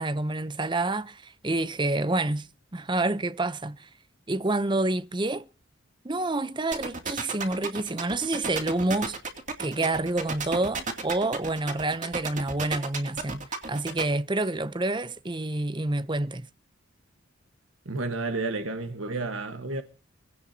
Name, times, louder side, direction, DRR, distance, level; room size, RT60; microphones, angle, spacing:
voice 1, 0.0-3.9 4.3-5.5 6.0-9.2 9.6-13.4 13.7-16.5, right 2 dB, 25° right, 0.7 m, -28 dB
sound 1, 6.7-14.0, right 4 dB, 40° right, 2.6 m, -32 dB
voice 2, 17.8-19.8, right 3 dB, 85° right, 1.4 m, -31 dB
24.0 x 17.0 x 2.8 m
head